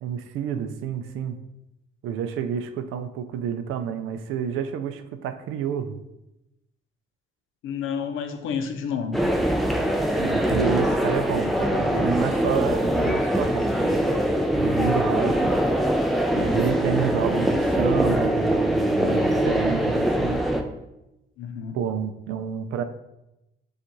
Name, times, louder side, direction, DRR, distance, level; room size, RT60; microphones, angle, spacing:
voice 1, 0.0-1.4 2.0-6.0 10.2-14.0 14.5-15.6 16.3-20.4 21.7-22.8, right 8 dB, 90° right, 9 dB, 0.4 m, -29 dB
voice 2, 7.6-9.2 15.0-15.1 21.4-21.8, left 6 dB, 80° left, 6 dB, 0.6 m, -30 dB
US Shopping mall (Great Lakes Crossing) - internal, 9.1-20.6, equal, ahead, 0.5 m, -23 dB
6.7 x 2.4 x 3.0 m, 0.92 s
cardioid pair, 90°, 20 cm